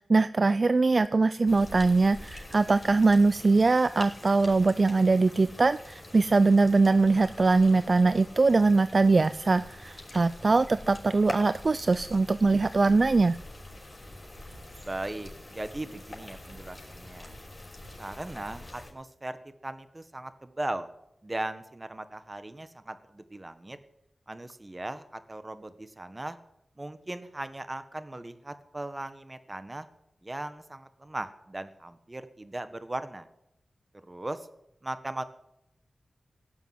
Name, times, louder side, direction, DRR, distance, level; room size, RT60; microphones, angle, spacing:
voice 1, 0.0-13.4, right 3 dB, 55° right, 14 dB, 0.4 m, -22 dB
sound 1, 1.5-18.9, left 1 dB, 35° left, 6.0 m, -45 dB
voice 2, 14.8-17.4 18.0-19.4 19.6-20.9 21.2-23.8 24.3-26.4 26.8-29.9 30.2-33.3 34.0-34.5 34.8-35.2, right 1 dB, 30° right, 10 dB, 1.5 m, -38 dB
17.5 x 7.1 x 9.5 m, 0.83 s
cardioid pair, 45°, 0 cm